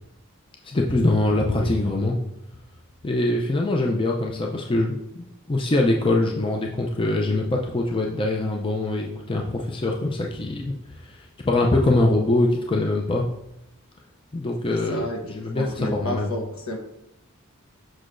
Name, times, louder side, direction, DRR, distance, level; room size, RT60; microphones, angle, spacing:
voice 1, 0.6-2.2 3.0-13.3 14.3-16.3, left 2 dB, 25° left, 0 dB, 0.5 m, -23 dB
voice 2, 14.7-15.2 15.6-16.8, left 1 dB, 70° left, 2 dB, 1.2 m, -31 dB
6.5 x 6.1 x 2.6 m, 0.83 s
head